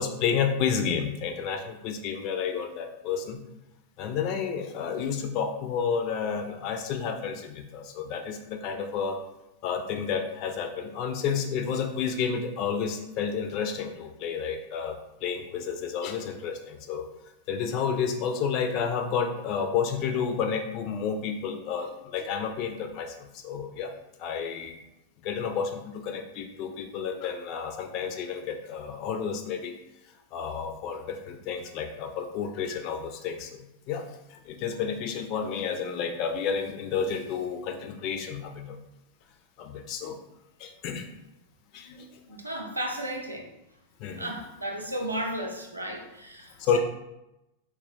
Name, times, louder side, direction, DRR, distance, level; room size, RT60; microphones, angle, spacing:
voice 1, 0.0-3.4 4.0-9.2 9.6-17.0 17.5-23.9 24.2-24.8 25.2-29.7 30.3-34.0 34.3-38.8 39.6-40.2 40.6-41.1 41.7-42.2 44.0-44.3 46.6-46.8, left 6 dB, 40° left, 6 dB, 0.4 m, -31 dB
voice 2, 42.3-43.5 44.2-46.8, right 1 dB, 85° right, 0 dB, 0.6 m, -34 dB
4.1 x 2.3 x 2.6 m, 0.91 s
figure-of-eight pair, 90°, 0 cm